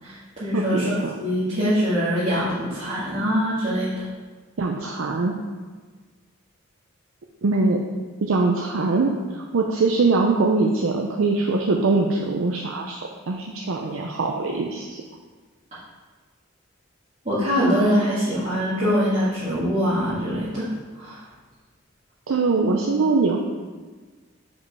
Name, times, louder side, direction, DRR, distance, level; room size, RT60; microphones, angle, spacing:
voice 1, 0.0-4.0 17.2-20.7 21.0-21.2, equal, 35° right, -14 dB, 2.0 m, -23 dB
voice 2, 0.5-1.1 4.6-5.3 7.4-7.8 8.2-15.0 22.3-23.4, right 3 dB, 90° right, 1 dB, 0.5 m, -22 dB
5.3 x 5.2 x 4.7 m, 1.4 s
head